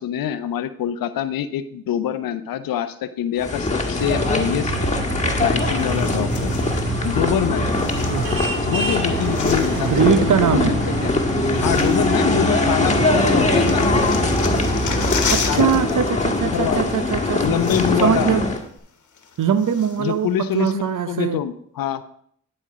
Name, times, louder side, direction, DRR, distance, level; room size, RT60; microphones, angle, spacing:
voice 1, 0.0-4.7 5.4-6.5 7.0-7.7 8.6-11.1 11.6-13.9 15.5-16.0 16.5-16.9 17.4-18.3 20.0-22.0, left 10 dB, 85° left, 13 dB, 0.6 m, -25 dB
sound 1, 3.4-18.6, left 2 dB, 20° left, 1.5 m, -22 dB
sound 2, 4.0-15.5, right 4 dB, 80° right, 1.4 m, -28 dB
sound 3, 5.8-6.9 7.6-8.7 9.0-10.2 11.0-11.1 11.5-12.6 12.9-16.4 17.2-17.3 17.5-18.2 18.6-18.7 19.2-20.1 20.7-20.8, left 5 dB, 60° left, 1.2 m, -32 dB
voice 2, 9.7-10.8 15.3-17.4 18.0-18.5 19.4-21.4, right 7 dB, 65° right, 13 dB, 0.8 m, -21 dB
10.5 x 4.4 x 4.9 m, 0.65 s
supercardioid pair, 40°, 34 cm